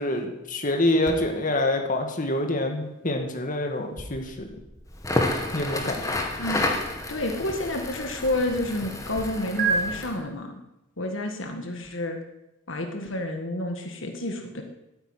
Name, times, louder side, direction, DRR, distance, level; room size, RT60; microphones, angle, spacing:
voice 1, 0.0-4.5 5.5-6.0, left 1 dB, 40° left, 4 dB, 2.0 m, -26 dB
sound 1, 1.0-9.2 9.6-9.7, right 7 dB, 40° right, 3.0 m, -37 dB
Crackle, 4.9-10.2, left 2 dB, 15° left, 2.0 m, -30 dB
voice 2, 6.4-6.8 7.1-10.6 11.0-12.2 12.7-14.6, left 1 dB, 65° left, 4 dB, 1.8 m, -30 dB
14.0 x 9.6 x 9.9 m, 0.94 s
head